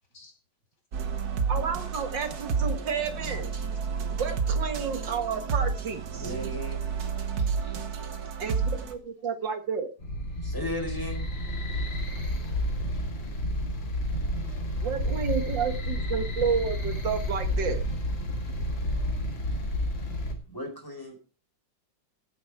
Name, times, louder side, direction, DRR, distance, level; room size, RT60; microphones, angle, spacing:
sound 1, 0.9-8.9, right 5 dB, 55° right, 1.7 m, -30 dB
voice 1, 1.5-3.5 4.1-6.3 8.4-9.9 14.8-17.8, right 6 dB, 75° right, 2.3 m, -31 dB
voice 2, 6.2-6.8 7.3-7.8 10.4-11.2 20.5-21.2, left 1 dB, 10° left, 4.3 m, -36 dB
voice 3, 8.0-8.4 10.9-11.0 11.6-12.5 12.9-13.1 13.5-13.7 14.7-14.8, left 3 dB, 60° left, 3.6 m, -57 dB
sound 2, 10.0-20.3, equal, 85° left, 3.2 m, -30 dB
13.5 x 9.5 x 4.6 m
omnidirectional pair, 2.0 m